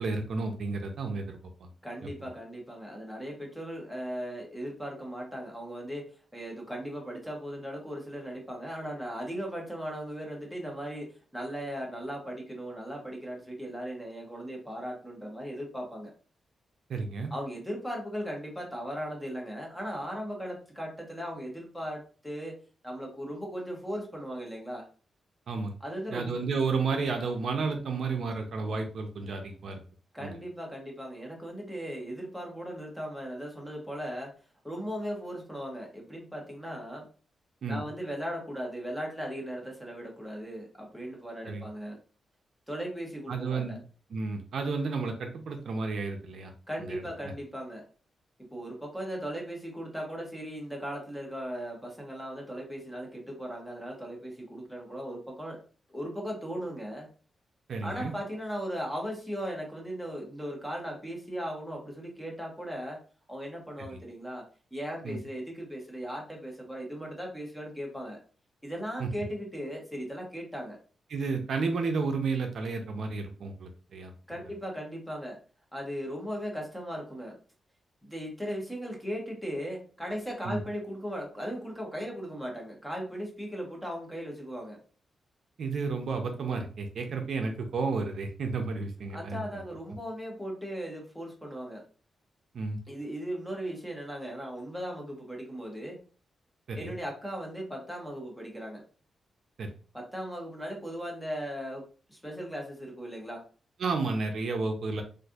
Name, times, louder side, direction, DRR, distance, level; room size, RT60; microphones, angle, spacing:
voice 1, 0.0-1.7 2.2-2.3 16.9-17.3 25.5-25.8 26.1-29.8 30.2-30.4 37.6-37.8 41.4-41.6 43.3-43.8 44.1-46.5 46.8-47.0 57.7-58.1 63.9-64.0 65.0-65.2 69.0-69.1 71.1-74.4 80.4-80.6 85.6-89.6 92.5-92.8 96.7-97.0 99.6-99.7 103.8-105.0, right 4 dB, 60° right, 4 dB, 0.5 m, -32 dB
voice 2, 1.8-16.1 17.3-22.6 22.8-24.9 25.8-26.4 30.1-34.3 34.6-37.1 37.7-42.0 42.7-43.8 46.7-47.8 48.5-55.6 55.9-57.1 57.8-63.0 63.3-64.4 64.7-68.2 68.6-70.8 74.3-75.4 75.7-77.4 78.0-84.8 89.1-91.8 92.9-96.0 96.8-98.8 99.9-101.8 102.1-103.4, equal, 5° left, 0 dB, 0.8 m, -37 dB
4.1 x 2.5 x 2.4 m, 0.39 s
wide cardioid pair, 165°, 0 cm